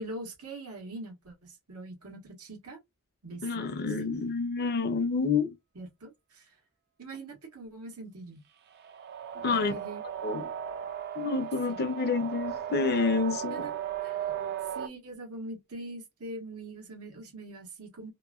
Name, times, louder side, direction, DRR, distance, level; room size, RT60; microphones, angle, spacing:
voice 1, 0.0-2.8 3.2-3.8 5.7-6.5 7.0-8.4 9.5-10.0 11.7-11.8 13.5-14.2 14.7-18.1, right 2 dB, 85° right, 1.3 m, -43 dB
voice 2, 3.4-5.5 9.4-9.7 10.2-10.5 11.2-13.7, left 4 dB, 45° left, 0.5 m, -28 dB
sound 1, 8.7-14.9, right 9 dB, 50° right, 0.5 m, -36 dB
2.8 x 2.5 x 2.4 m
head